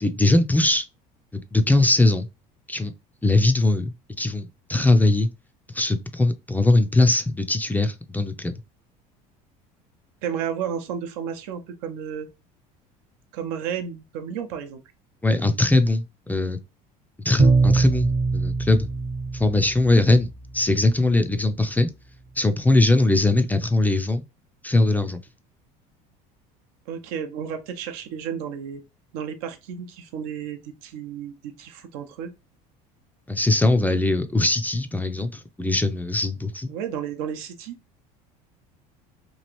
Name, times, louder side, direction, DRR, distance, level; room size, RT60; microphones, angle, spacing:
voice 1, 0.0-0.8 1.3-2.3 2.7-2.9 3.2-5.3 5.7-8.5 15.2-16.6 17.2-18.9 19.3-20.3 20.5-21.9 22.4-24.2 24.6-25.2 33.3-36.7, left 2 dB, 10° left, 0.4 m, -21 dB
voice 2, 10.2-12.3 13.3-14.8 26.9-28.8 29.1-32.3 36.7-37.7, right 8 dB, 80° right, 0.7 m, -32 dB
Bowed string instrument, 17.4-20.2, right 3 dB, 40° right, 0.7 m, -22 dB
3.0 x 2.4 x 3.0 m
supercardioid pair, 90°, 19 cm